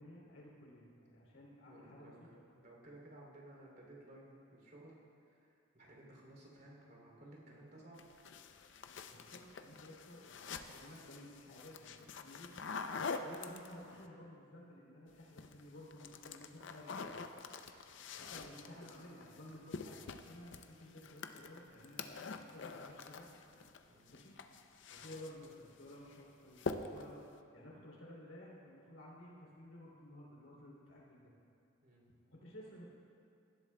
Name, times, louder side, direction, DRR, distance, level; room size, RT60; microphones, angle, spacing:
voice 1, 0.0-2.1 9.1-12.5 13.2-17.2 18.1-20.0 20.3-22.1 22.4-23.3 24.1-24.4 24.9-27.2 27.5-31.3 32.3-32.9, left 1 dB, 80° left, -4 dB, 2.9 m, -54 dB
voice 2, 1.6-5.0 5.2-8.1 18.1-18.5 23.9-24.1 31.8-32.0, right 1 dB, 50° right, -3 dB, 2.8 m, -57 dB
sound 1, 8.0-14.0 15.1-15.6 15.9-23.8 24.1-25.5 25.9-26.2 26.6-27.2, left 4 dB, 60° left, 0.5 m, -46 dB
18.0 x 12.0 x 2.2 m, 2.5 s
head